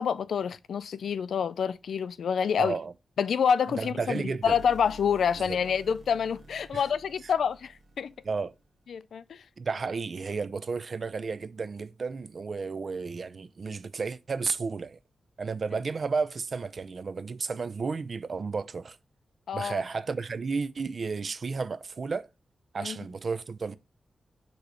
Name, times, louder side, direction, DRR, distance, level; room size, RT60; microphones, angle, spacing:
voice 1, 0.0-2.8 3.2-8.1 8.9-9.4 19.5-19.8 22.8-23.0, left 7 dB, 85° left, 0.4 m, -27 dB
voice 2, 2.6-2.9 3.8-4.6 5.4-5.6 6.7-6.8 8.2-8.5 9.6-15.0 15.4-19.0 19.5-22.3 22.7-23.8, right 4 dB, 45° right, 0.4 m, -32 dB
sound 1, 4.4-8.7, right 2 dB, 85° right, 1.2 m, -50 dB
6.7 x 3.1 x 4.7 m
wide cardioid pair, 145°, 0 cm